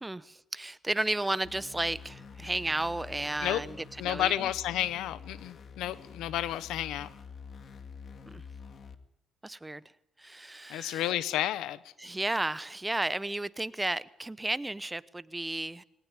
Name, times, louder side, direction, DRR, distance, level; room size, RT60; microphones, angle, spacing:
voice 1, 0.0-4.5 8.3-8.4 9.4-9.8 10.2-11.1 12.0-15.8, right 2 dB, 15° right, 0.9 m, -33 dB
sound 1, 1.4-9.0, left 5 dB, 50° left, 2.1 m, -47 dB
voice 2, 4.0-7.1 10.7-11.8, left 13 dB, 90° left, 1.1 m, -31 dB
21.0 x 19.0 x 9.8 m
cardioid pair, 90°, 0 cm